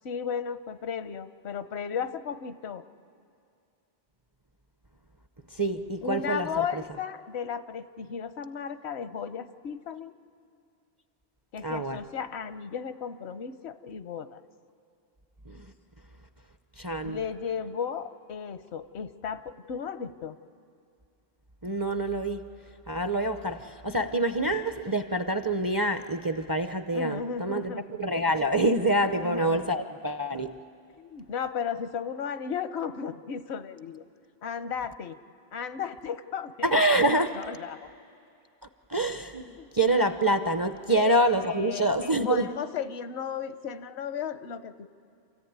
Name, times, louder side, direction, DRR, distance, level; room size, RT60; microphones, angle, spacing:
voice 1, 0.0-2.8 6.0-10.2 11.5-14.4 17.0-20.4 26.9-27.9 29.2-29.6 31.0-34.0 34.4-35.2 35.5-36.7 37.3-37.9 39.6-39.7 40.9-44.9, left 7 dB, 80° left, 12 dB, 1.0 m, -35 dB
voice 2, 5.5-6.8 11.6-12.0 15.5-15.7 16.8-17.2 21.6-22.5 22.9-30.6 36.6-37.4 38.9-42.5, right 1 dB, 25° right, 8 dB, 0.5 m, -26 dB
27.0 x 14.5 x 9.4 m, 2.4 s
omnidirectional pair, 1.1 m